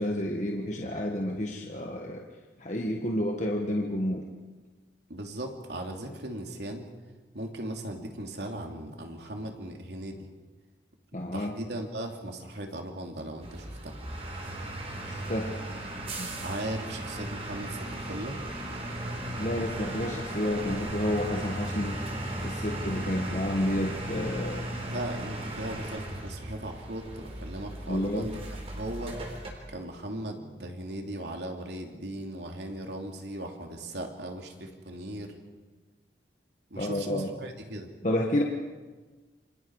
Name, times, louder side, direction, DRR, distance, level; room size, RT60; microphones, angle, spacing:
voice 1, 0.0-2.2 2.6-4.2 11.1-11.5 15.0-15.5 16.2-16.3 19.4-22.1 22.4-24.7 27.9-28.3 36.7-37.3 38.0-38.4, left 1 dB, 40° left, 0 dB, 1.6 m, -30 dB
voice 2, 5.1-6.9 7.3-10.2 11.3-14.0 16.4-18.4 24.8-28.4 28.7-29.2 29.7-35.3 36.7-37.9, right 1 dB, 70° right, 2 dB, 3.0 m, -38 dB
sound 1, 13.4-29.5, right 1 dB, 35° right, 4.0 m, -36 dB
28.5 x 25.5 x 4.8 m, 1.3 s
head